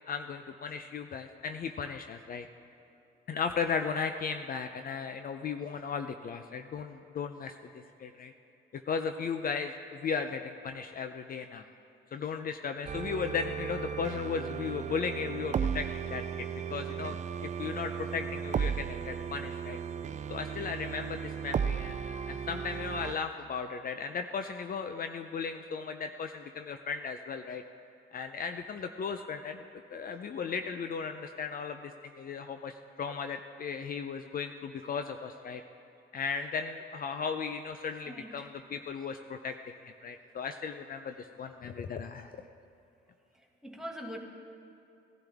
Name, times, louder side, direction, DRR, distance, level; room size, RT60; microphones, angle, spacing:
voice 1, 0.1-2.5 3.3-8.3 8.7-11.6 12.1-19.8 20.3-27.6 28.1-35.6 36.1-39.6 39.8-42.3, left 6 dB, 45° left, 7 dB, 0.6 m, -36 dB
sound 1, 12.9-23.2, right 7 dB, 35° right, 0.4 m, -35 dB
voice 2, 38.1-38.5 43.3-44.2, equal, 5° right, -2 dB, 1.9 m, -43 dB
18.5 x 11.5 x 3.5 m, 2.7 s
cardioid pair, 90°, 20 cm